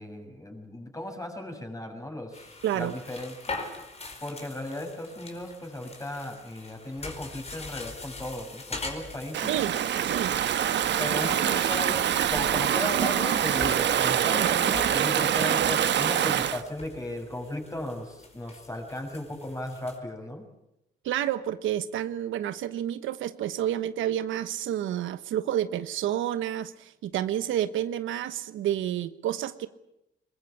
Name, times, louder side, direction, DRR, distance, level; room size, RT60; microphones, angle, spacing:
voice 1, 0.0-3.6 4.2-9.6 11.0-20.5, left 1 dB, 15° left, 4 dB, 7.2 m, -36 dB
sound 1, 2.3-20.0, left 3 dB, 30° left, 5.0 m, -43 dB
voice 2, 2.6-2.9 9.5-9.7 10.0-10.3 14.4-14.5 21.0-29.7, right 11 dB, 80° right, 12 dB, 1.2 m, -29 dB
Stream / Ocean, 9.3-16.6, right 10 dB, 65° right, 1.3 m, -25 dB
22.5 x 21.0 x 8.6 m, 0.85 s
cardioid pair, 90°, 20 cm